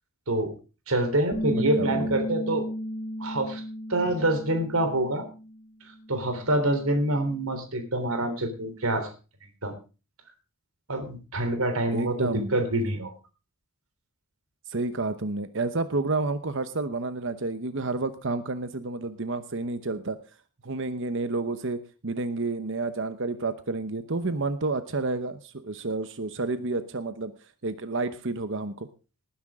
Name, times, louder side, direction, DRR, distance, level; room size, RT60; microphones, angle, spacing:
voice 1, 0.9-2.7 3.2-3.6 3.9-5.3 6.1-9.1 9.4-9.7 10.9-13.1, right 1 dB, 75° right, 7 dB, 3.6 m, -26 dB
Bass guitar, 1.3-5.6 5.9-7.6, equal, 20° left, 1.9 m, -35 dB
voice 2, 1.5-2.1 11.9-12.9 14.7-20.2 20.6-27.3 27.6-28.9, right 3 dB, 60° right, 11 dB, 0.9 m, -30 dB
19.5 x 10.0 x 3.6 m, 0.33 s
head